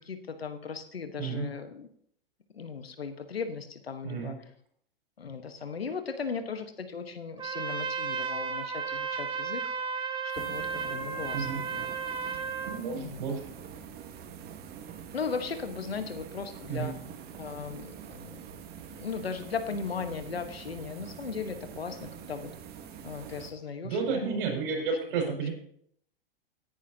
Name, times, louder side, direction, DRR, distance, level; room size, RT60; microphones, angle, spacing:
voice 1, 0.0-1.9 2.5-4.3 5.2-9.6 10.3-11.9 12.9-13.2 15.1-16.9 17.4-18.4 19.0-22.5 23.0-24.8 25.2-25.3, left 5 dB, 90° left, 8 dB, 1.4 m, -37 dB
Trumpet, 7.4-12.8, right 6 dB, 15° right, 1.5 m, -34 dB
sound 1, 10.3-23.5, right 8 dB, 35° right, 1.4 m, -45 dB
voice 2, 12.7-13.4 16.7-16.9 23.8-25.5, right 5 dB, 60° right, 1 dB, 5.4 m, -31 dB
18.0 x 10.0 x 2.9 m, 0.68 s
hypercardioid pair, 105°, 29 cm